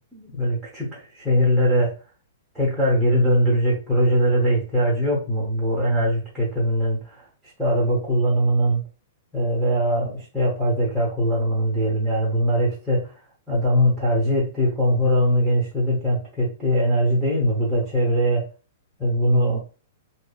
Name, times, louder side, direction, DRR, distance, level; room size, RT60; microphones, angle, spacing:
voice 1, 0.0-1.9 2.5-7.3 7.6-8.8 9.3-13.1 13.5-18.5 19.0-19.6, equal, ahead, -5 dB, 0.8 m, -21 dB
2.7 x 2.4 x 2.3 m, 0.35 s
hypercardioid pair, 150°, 0 cm